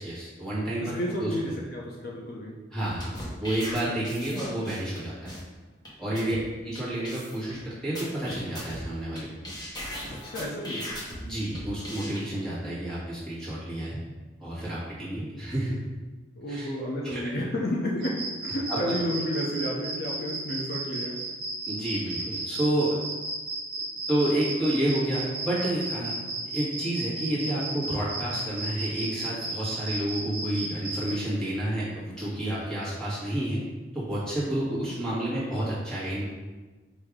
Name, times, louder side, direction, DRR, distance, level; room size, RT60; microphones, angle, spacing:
voice 1, 0.0-1.3 2.7-3.1 3.4-5.3 6.0-6.4 6.6-9.3 11.2-14.0 14.4-15.8 16.5-16.7 17.0-17.3 18.7-18.8 21.7-23.0 24.1-26.2 26.5-33.6 33.9-36.2, right 1 dB, 5° left, -9 dB, 1.4 m, -30 dB
voice 2, 0.8-2.5 4.1-4.2 6.3-6.4 10.1-10.9 16.4-21.2, equal, 55° left, -2 dB, 0.5 m, -31 dB
sound 1, 2.9-5.0 5.3-5.4 5.9-6.0 6.2-6.4 6.8-6.9 7.0-7.6 8.0-9.2 9.4-11.2 11.5-12.2, equal, 20° left, 1.0 m, -38 dB
sound 2, 18.0-31.1, right 2 dB, 45° right, 1.3 m, -33 dB
4.8 x 2.7 x 3.5 m, 1.3 s
head